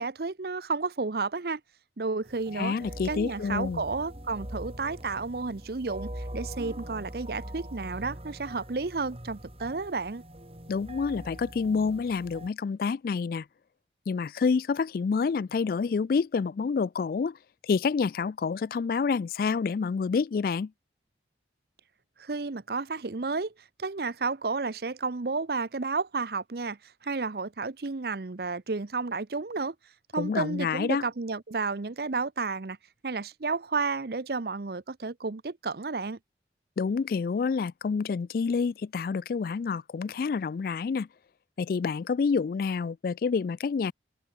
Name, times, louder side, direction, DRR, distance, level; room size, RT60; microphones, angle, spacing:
voice 1, 0.0-1.6 2.0-2.8 3.0-10.2 22.2-23.5 23.8-29.7 30.1-32.8 33.0-36.2, right 4 dB, 55° right, 0.7 m, -32 dB
sound 1, 2.2-12.5, equal, 35° right, 5.1 m, -42 dB
voice 2, 2.6-3.8 10.7-13.5 14.1-17.4 17.6-20.7 30.2-31.0 36.8-41.1 41.6-43.9, left 5 dB, 50° left, 0.3 m, -28 dB
head